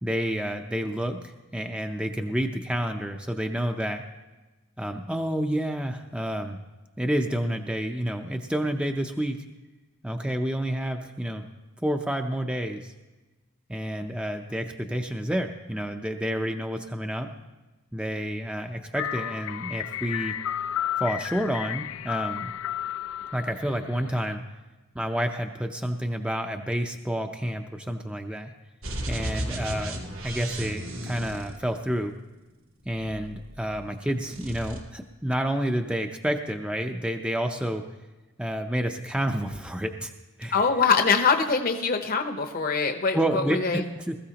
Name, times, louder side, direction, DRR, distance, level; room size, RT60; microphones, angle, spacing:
voice 1, 0.0-4.0 4.8-6.6 7.0-9.4 10.0-11.5 11.8-12.9 13.7-17.3 17.9-20.3 21.0-22.5 23.3-24.4 24.9-28.5 29.1-30.0 30.2-32.1 32.9-37.8 38.4-40.1 40.4-40.6 43.1-44.2, equal, 5° right, 4 dB, 0.6 m, -29 dB
sound 1, 19.0-24.3, left 11 dB, 85° left, 0.4 m, -33 dB
sound 2, 28.8-32.1 32.8-33.9 34.2-34.8, right 1 dB, 85° right, 2.3 m, -35 dB
voice 2, 40.5-43.8, left 5 dB, 45° left, 5 dB, 0.9 m, -23 dB
20.5 x 14.5 x 2.9 m, 1.2 s
head